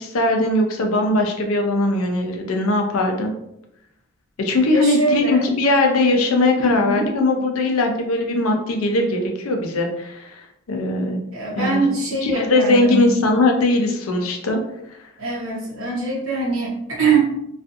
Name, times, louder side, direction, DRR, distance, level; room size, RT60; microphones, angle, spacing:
voice 1, 0.0-3.3 4.4-10.4 10.7-11.2 11.6-11.8 12.2-14.6, left 2 dB, 85° left, 3 dB, 0.5 m, -20 dB
voice 2, 4.7-5.5 6.6-7.1 11.3-13.1 15.2-17.2, right 3 dB, 75° right, -4 dB, 0.8 m, -23 dB
2.5 x 2.4 x 2.4 m, 0.81 s
head